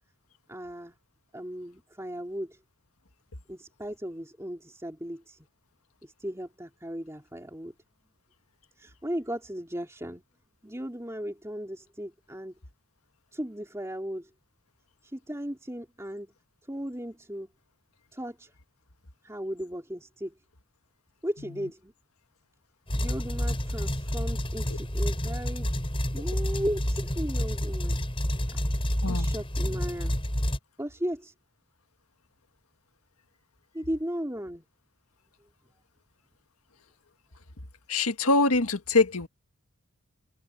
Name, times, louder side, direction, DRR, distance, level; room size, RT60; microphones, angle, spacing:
voice 1, 0.5-1.0 1.3-2.6 3.5-5.5 6.0-7.7 8.8-10.2 10.6-12.6 13.3-14.3 15.1-16.3 16.7-17.5 18.1-18.5 19.2-20.3 21.2-21.9 22.9-25.7 26.1-28.0 28.5-28.6 29.1-30.2 30.8-31.3 33.7-34.6, equal, 15° right, 3.6 m, -36 dB
sound 1, 22.9-30.6, equal, 25° left, 6.7 m, -29 dB
voice 2, 37.9-39.3, left 3 dB, 90° left, 1.8 m, -24 dB
open air
head